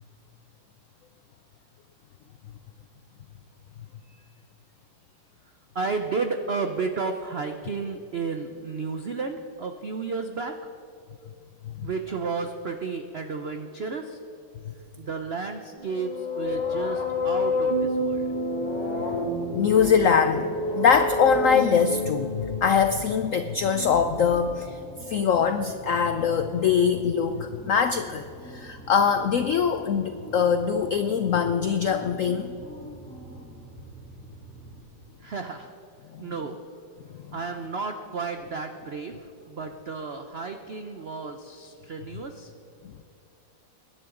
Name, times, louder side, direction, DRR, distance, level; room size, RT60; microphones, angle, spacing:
voice 1, 5.7-10.5 11.8-14.2 15.0-18.3 35.2-35.7 36.2-36.6 37.3-42.5, right 4 dB, 70° right, 6 dB, 0.5 m, -32 dB
sound 1, 15.8-23.5, left 1 dB, 20° left, 2.5 m, -29 dB
sound 2, 16.4-34.8, equal, 5° left, 3.0 m, -45 dB
voice 2, 19.5-20.5 20.7-24.8 25.1-32.5 36.1-36.2 42.8-42.9, left 6 dB, 75° left, 9 dB, 0.7 m, -23 dB
sound 3, 19.7-19.9 20.8-21.4 22.3-22.9 23.8-24.4, left 2 dB, 40° left, 2.0 m, -44 dB
23.0 x 11.0 x 3.8 m, 2.8 s
omnidirectional pair, 2.0 m